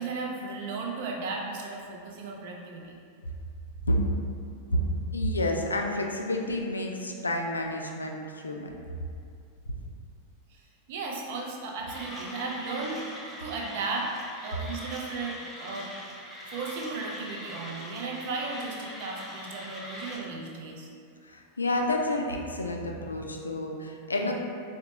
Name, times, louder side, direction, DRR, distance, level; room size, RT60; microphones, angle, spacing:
voice 1, 0.0-2.9 10.5-10.6 10.9-13.0 13.4-14.1 14.4-15.9 16.5-20.9 24.2-24.3, right 3 dB, 50° right, -1 dB, 0.5 m, -35 dB
voice 2, 5.1-8.7 21.2-24.3, left 1 dB, 80° left, 2 dB, 0.3 m, -29 dB
Mechanisms, 11.9-20.2, equal, 5° left, 0.6 m, -42 dB
3.9 x 2.1 x 2.8 m, 2.4 s
figure-of-eight pair, 90°, 0 cm